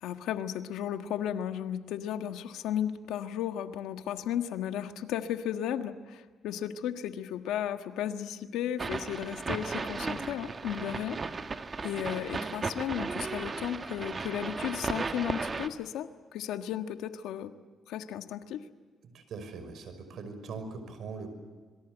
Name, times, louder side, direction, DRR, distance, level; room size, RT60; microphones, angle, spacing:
voice 1, 0.0-11.2 11.8-17.5 17.9-18.6, left 10 dB, 90° left, 7 dB, 1.5 m, -34 dB
sound 1, 8.8-15.7, right 4 dB, 35° right, 1.5 m, -35 dB
voice 2, 19.0-21.3, right 4 dB, 65° right, 10 dB, 5.7 m, -41 dB
26.5 x 22.5 x 8.0 m, 1.4 s
cardioid pair, 90°, 0 cm